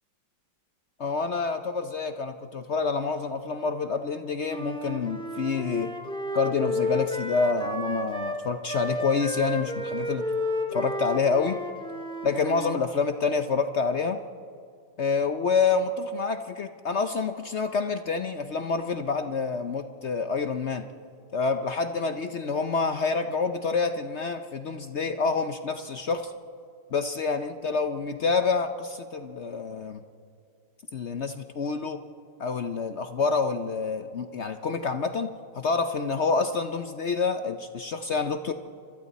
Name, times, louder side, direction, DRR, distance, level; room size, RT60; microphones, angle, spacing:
voice 1, 1.0-5.9 6.3-10.2 10.7-11.6 12.2-14.2 15.0-20.9 21.3-26.3 26.9-30.0 30.9-32.0 32.4-38.5, left 4 dB, 70° left, 8 dB, 0.6 m, -27 dB
Wind instrument woodwind instrument, 4.4-12.8, left 1 dB, 5° left, 1.5 m, -32 dB
29.0 x 26.0 x 4.1 m, 2.4 s
omnidirectional pair, 2.1 m